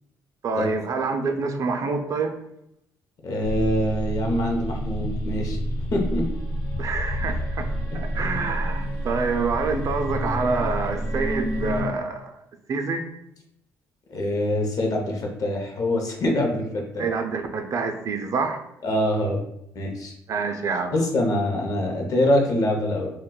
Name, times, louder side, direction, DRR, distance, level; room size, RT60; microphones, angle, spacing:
voice 1, 0.4-2.3 6.8-7.7 7.9-12.3 12.7-13.0 17.0-18.6 20.3-20.9, right 4 dB, 50° right, 6 dB, 0.4 m, -26 dB
voice 2, 3.2-5.6 5.9-6.3 7.9-8.0 14.1-17.1 18.8-19.4 19.7-20.1 20.9-23.1, left 1 dB, 55° left, 2 dB, 0.7 m, -24 dB
sound 1, 3.4-11.8, equal, 85° left, 1.0 m, -29 dB
2.2 x 2.1 x 3.7 m, 0.80 s
supercardioid pair, 70°, 7 cm